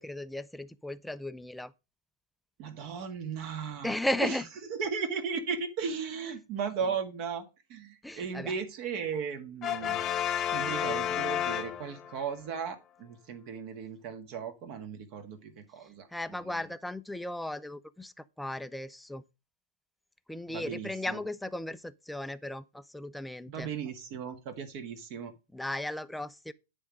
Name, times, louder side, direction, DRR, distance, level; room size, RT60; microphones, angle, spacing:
voice 1, 0.0-1.7 3.8-4.5 8.0-8.5 16.1-19.2 20.3-23.7 25.5-26.5, left 1 dB, 5° left, 0.5 m, -36 dB
voice 2, 2.6-3.9 4.2-4.4 4.7-10.0 10.5-16.7 20.5-21.2 23.5-25.3, right 6 dB, 50° right, 1.6 m, -36 dB
Brass instrument, 9.6-12.3, left 9 dB, 30° left, 1.0 m, -31 dB
9.7 x 3.6 x 5.2 m
hypercardioid pair, 105°, 0 cm